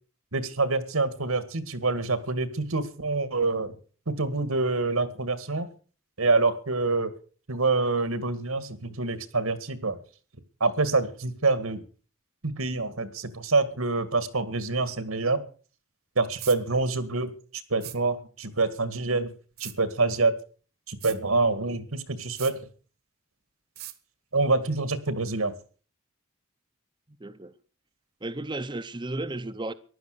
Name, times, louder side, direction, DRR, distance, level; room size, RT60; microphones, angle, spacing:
voice 1, 0.3-3.8 4.1-5.7 6.2-7.1 7.5-10.0 10.6-11.8 12.4-15.4 16.2-17.3 17.7-19.3 19.6-20.4 20.9-22.7 24.3-25.6, right 3 dB, 80° right, 2.0 m, -26 dB
sound 1, 16.4-16.6 17.8-18.0 19.6-19.8 21.0-21.2 22.4-22.6 23.8-24.0, right 14 dB, 45° right, 1.2 m, -39 dB
voice 2, 27.2-27.6 28.2-29.7, right 2 dB, 20° right, 0.7 m, -34 dB
15.0 x 11.5 x 6.6 m
head